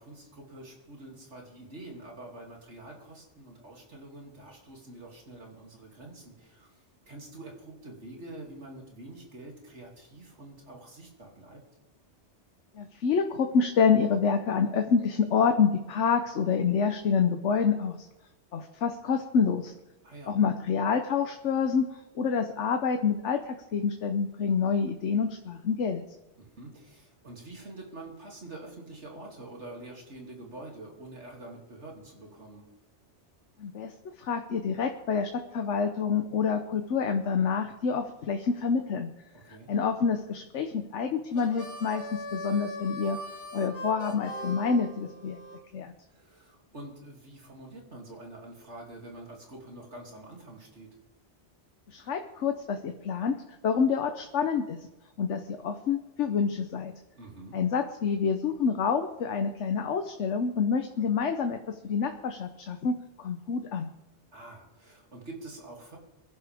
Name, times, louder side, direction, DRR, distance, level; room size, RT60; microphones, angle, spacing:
voice 1, 0.0-6.8 7.1-11.6 20.0-20.4 26.4-32.6 39.3-39.7 46.1-50.9 57.2-57.6 64.3-66.0, right 2 dB, 80° right, -1 dB, 3.1 m, -46 dB
voice 2, 12.7-18.1 18.5-19.7 20.3-26.0 33.6-33.9 34.2-39.1 39.7-43.2 43.5-45.4 45.7-45.9 51.9-53.4 53.6-54.8 55.2-56.9 57.5-63.9, left 6 dB, 85° left, 6 dB, 1.2 m, -27 dB
Harmonica, 41.3-45.6, equal, 50° left, 1.9 m, -40 dB
22.5 x 11.0 x 3.5 m, 1.0 s
omnidirectional pair, 1.2 m